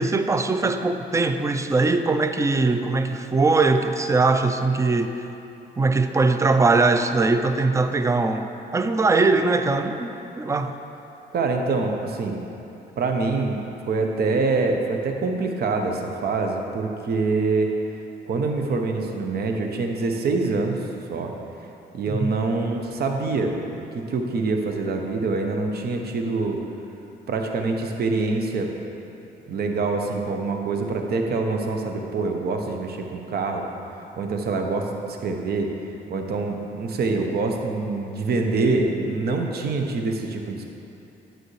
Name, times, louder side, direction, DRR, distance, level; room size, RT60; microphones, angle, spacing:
voice 1, 0.0-5.1 5.8-10.1 10.4-10.7 22.1-22.3, right 3 dB, 15° right, 8 dB, 0.4 m, -21 dB
voice 2, 11.3-12.4 13.0-17.7 18.2-21.3 21.9-26.6 27.3-28.7 29.5-35.7 36.1-40.7, right 3 dB, 55° right, 3 dB, 0.8 m, -25 dB
9.2 x 7.7 x 3.2 m, 2.9 s
cardioid pair, 85°, 19 cm